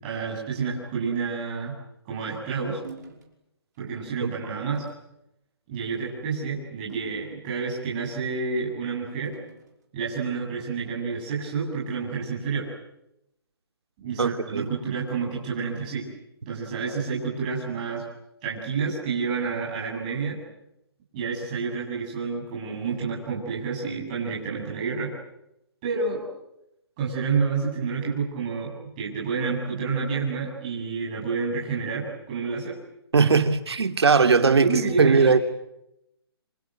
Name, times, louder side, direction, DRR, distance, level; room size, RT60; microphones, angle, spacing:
voice 1, 0.0-1.8 2.0-2.8 3.8-4.8 5.7-9.3 9.9-12.7 14.0-16.1 16.5-18.0 18.4-20.4 21.1-25.1 25.8-26.2 27.0-32.8 34.4-35.3, right 5 dB, 20° right, 7.7 m, -29 dB
sound 1, 2.8-3.3 3.7-3.9 4.7-5.1 5.8-6.1 6.9-7.8 9.2-9.8, right 5 dB, 45° right, 5.6 m, -45 dB
voice 2, 14.2-14.7 33.1-34.7 35.0-35.4, right 5 dB, 80° right, 3.0 m, -19 dB
27.5 x 27.5 x 7.9 m
hypercardioid pair, 175°, 13 cm